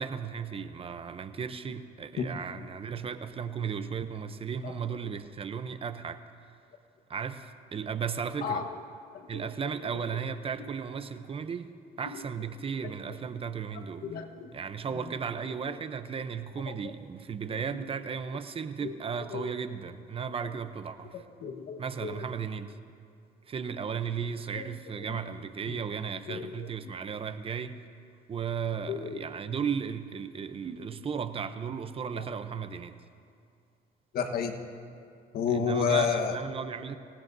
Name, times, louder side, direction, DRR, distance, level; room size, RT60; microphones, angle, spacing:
voice 1, 0.0-6.2 7.1-8.6 9.3-11.7 12.0-14.2 14.5-21.3 21.8-22.8 23.5-27.8 28.3-33.0 35.5-37.0, right 6 dB, 35° right, 10 dB, 0.7 m, -35 dB
voice 2, 9.1-9.5 12.1-12.2 14.0-14.5 16.7-16.8 17.7-17.9 18.8-18.9 19.3-19.4 21.1-22.2 24.5-24.7 25.1-25.2 25.7-25.8 26.3-26.7 28.9-29.2 32.1-32.2 34.1-34.6 35.3-36.4, left 6 dB, 65° left, 5 dB, 1.3 m, -31 dB
25.0 x 18.5 x 2.7 m, 2.4 s
cardioid pair, 110°, 17 cm